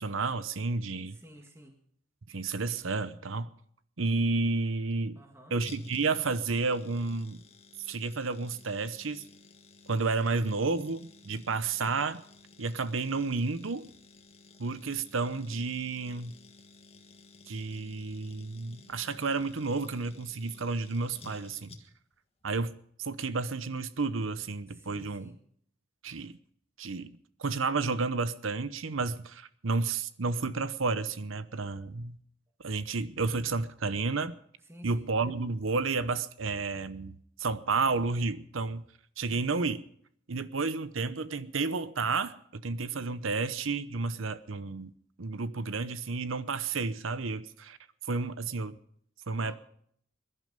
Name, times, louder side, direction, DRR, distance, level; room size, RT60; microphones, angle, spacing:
voice 1, 0.0-1.2 2.3-3.5 4.0-5.2 5.5-7.4 7.9-9.2 9.9-12.2 12.6-13.9 14.6-16.3 17.5-21.8 22.4-22.7 23.0-25.3 26.0-26.4 26.8-32.2 32.6-34.4 34.8-38.8 39.2-39.8 40.3-44.9 45.2-47.8 48.1-48.8 49.3-49.5, right 3 dB, 85° right, 0.9 m, -31 dB
voice 2, 1.1-1.8 5.2-5.6 24.7-25.4 34.6-35.1 49.3-49.6, equal, 15° right, 1.7 m, -53 dB
sound 1, 5.6-22.2 22.4-22.5, left 3 dB, 30° left, 1.6 m, -54 dB
22.0 x 11.0 x 5.2 m
head